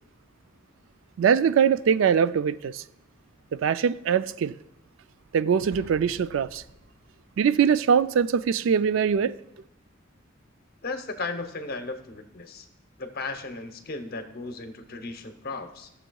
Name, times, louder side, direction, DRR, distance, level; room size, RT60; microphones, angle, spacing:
voice 1, 1.2-2.8 3.5-4.5 5.3-6.6 7.4-9.4, right 7 dB, 70° right, 0.3 m, -22 dB
Explosion, 5.7-7.4, equal, 45° right, 3.5 m, -49 dB
voice 2, 10.8-12.7 13.0-15.9, left 3 dB, 50° left, 0.8 m, -35 dB
15.5 x 6.9 x 2.3 m
head